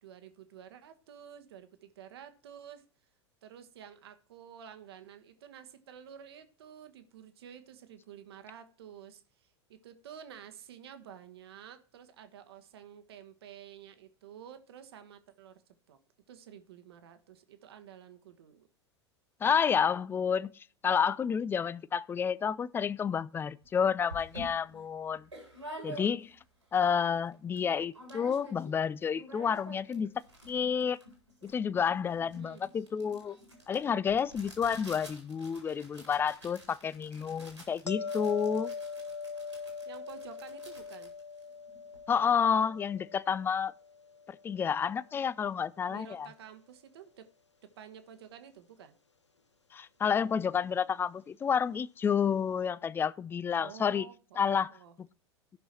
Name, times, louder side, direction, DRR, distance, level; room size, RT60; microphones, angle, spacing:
voice 1, 0.0-2.8 3.4-15.6 15.9-16.0 16.3-18.7 32.4-32.6 39.8-41.1 45.9-47.3 47.6-48.9 53.6-54.9, right 9 dB, 60° right, 1.3 m, -51 dB
voice 2, 19.4-20.5 20.8-25.3 25.8-26.4 26.7-30.1 30.5-31.0 31.4-33.4 33.7-38.7 42.1-43.7 44.4-46.3 49.7-54.1 54.4-54.7, left 7 dB, 15° left, 0.4 m, -30 dB
sound 1, 23.6-23.7 24.1-26.5 26.9-27.0 27.2-27.6 27.9-28.8 29.0-42.1, right 1 dB, 90° right, 4.1 m, -49 dB
sound 2, 37.9-44.9 50.1-50.3, left 5 dB, 85° left, 0.6 m, -41 dB
14.0 x 6.2 x 4.3 m
figure-of-eight pair, 85°, 14 cm